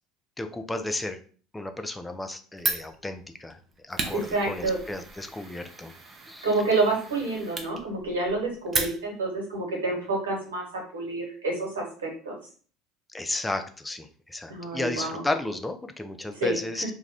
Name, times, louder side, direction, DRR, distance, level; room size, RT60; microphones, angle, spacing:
voice 1, 0.4-1.2 1.5-5.9 6.3-6.5 13.1-16.8, left 2 dB, 10° left, 7 dB, 0.4 m, -33 dB
Fire, 2.6-9.4, right 3 dB, 35° right, 0.6 m, -35 dB
voice 2, 4.1-4.8 6.4-12.3 14.5-15.2 16.4-16.6, right 3 dB, 85° right, -1 dB, 1.1 m, -28 dB
2.4 x 2.3 x 3.3 m, 0.42 s
hypercardioid pair, 75°, 0 cm